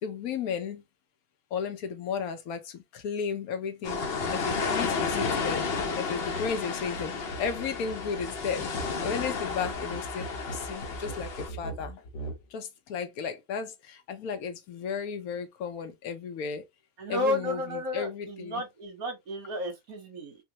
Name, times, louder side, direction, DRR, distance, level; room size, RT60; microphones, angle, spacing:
voice 1, 0.0-0.8 1.5-8.7 9.0-12.0 12.5-16.7 17.1-18.6, left 6 dB, 85° left, 1.2 m, -34 dB
sound 1, 3.8-11.5, left 4 dB, 50° left, 0.9 m, -32 dB
sound 2, 6.3-6.5 6.8-12.4, right 1 dB, 70° left, 1.4 m, -41 dB
voice 2, 17.0-20.4, left 1 dB, 75° right, 1.7 m, -32 dB
3.6 x 2.2 x 2.9 m
omnidirectional pair, 1.5 m